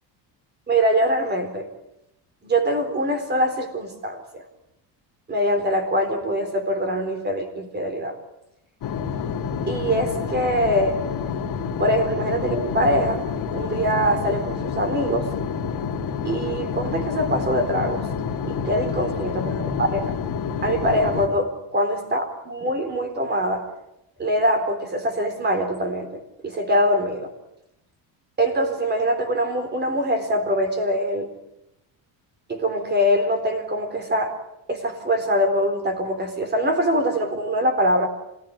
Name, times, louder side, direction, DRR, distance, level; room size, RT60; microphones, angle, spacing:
voice 1, 0.7-1.7 2.4-4.4 5.3-8.2 9.7-11.0 11.8-13.2 13.5-15.3 16.2-18.1 18.5-20.0 20.6-23.7 24.2-27.3 28.4-31.3 32.5-34.4 34.7-38.1, equal, 20° right, 8 dB, 4.2 m, -23 dB
sound 1, 8.8-21.3, left 6 dB, 45° left, 3.2 m, -28 dB
26.5 x 19.0 x 9.8 m, 0.86 s
cardioid pair, 160°, 46 cm